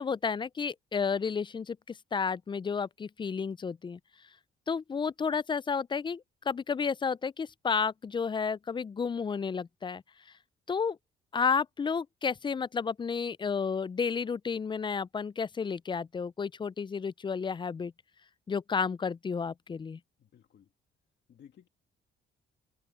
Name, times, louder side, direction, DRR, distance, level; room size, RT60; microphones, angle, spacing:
voice 1, 0.0-4.0 4.7-10.0 10.7-11.0 11.3-17.9 18.5-20.0, left 5 dB, 25° left, 0.3 m, -31 dB
voice 2, 20.2-20.7 21.3-21.7, left 9 dB, 60° left, 2.0 m, -57 dB
cardioid pair, 90°, 20 cm